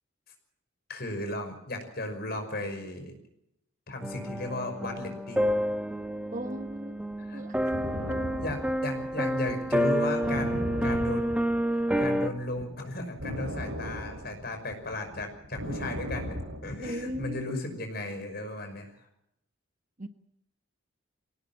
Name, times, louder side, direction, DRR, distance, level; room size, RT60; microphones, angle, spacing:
voice 1, 0.9-3.1 3.9-5.5 7.2-7.4 8.4-11.4 12.0-16.4 16.6-18.9, left 1 dB, 50° left, 5.8 m, -35 dB
sound 1, 4.0-12.3, equal, 5° right, 1.3 m, -29 dB
voice 2, 6.3-7.5 16.8-17.6 20.0-20.1, equal, 40° right, 1.3 m, -38 dB
sound 2, 7.7-12.1 12.4-17.3, equal, 75° right, 6.1 m, -36 dB
24.0 x 18.0 x 7.5 m
head